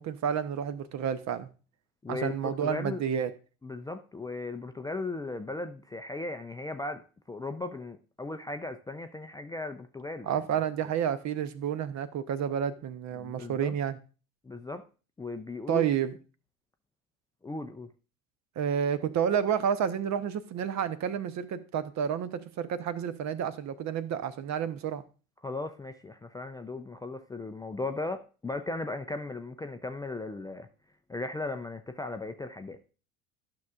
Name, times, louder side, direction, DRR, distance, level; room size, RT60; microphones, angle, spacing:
voice 1, 0.0-1.5 2.1-3.3 10.3-14.0 15.7-16.1 18.6-25.0, right 8 dB, 40° right, 0.8 m, -30 dB
voice 2, 2.0-3.0 3.6-10.4 13.1-13.7 14.4-14.8 15.2-15.9 17.4-17.9 25.4-30.7 31.1-32.8, left 2 dB, 10° left, 0.4 m, -37 dB
11.5 x 6.2 x 2.4 m
hypercardioid pair, 70°, 41 cm